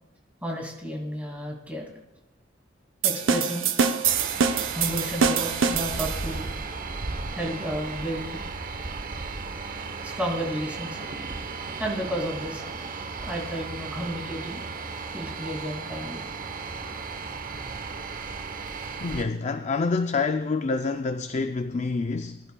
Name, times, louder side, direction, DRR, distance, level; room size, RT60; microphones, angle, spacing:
voice 1, 0.4-1.9 3.0-3.7 4.7-6.5 7.3-8.4 10.0-11.1 11.8-12.6 13.1-14.6 15.1-16.2, equal, 10° right, 2.4 m, -32 dB
sound 1, 3.0-6.5, right 6 dB, 90° right, 0.7 m, -25 dB
sound 2, 4.0-19.3, right 4 dB, 45° right, 0.9 m, -35 dB
voice 2, 19.0-22.4, left 4 dB, 35° left, 0.4 m, -27 dB
21.0 x 11.5 x 2.3 m
head